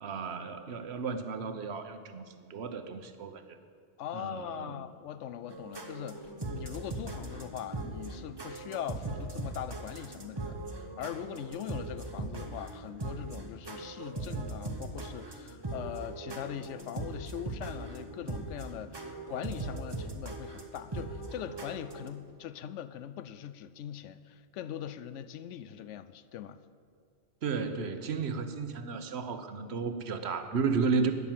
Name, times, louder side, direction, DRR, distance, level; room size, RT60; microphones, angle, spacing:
voice 1, 0.0-2.2 2.5-3.4 4.1-4.8 27.4-31.1, right 5 dB, 65° right, 9 dB, 1.1 m, -33 dB
voice 2, 4.0-26.6, left 10 dB, 90° left, 14 dB, 0.9 m, -41 dB
sound 1, 5.5-22.1, right 2 dB, 25° right, 1.0 m, -40 dB
12.0 x 9.5 x 7.5 m, 2.2 s
omnidirectional pair, 1.2 m